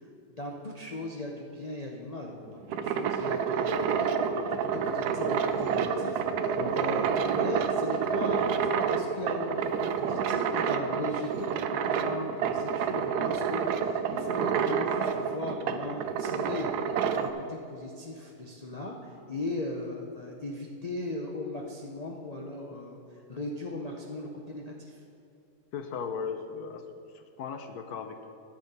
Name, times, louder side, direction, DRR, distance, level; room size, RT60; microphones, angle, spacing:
voice 1, 0.3-4.1 4.9-16.7 17.1-25.0, left 2 dB, 85° left, 0 dB, 0.3 m, -38 dB
sound 1, 2.5-17.3, right 6 dB, 70° right, 1.0 m, -29 dB
voice 2, 4.2-4.6 6.6-6.7 25.7-26.8 27.1-28.3, left 6 dB, 70° left, 7 dB, 1.1 m, -37 dB
10.5 x 7.1 x 5.3 m, 2.6 s
omnidirectional pair, 1.9 m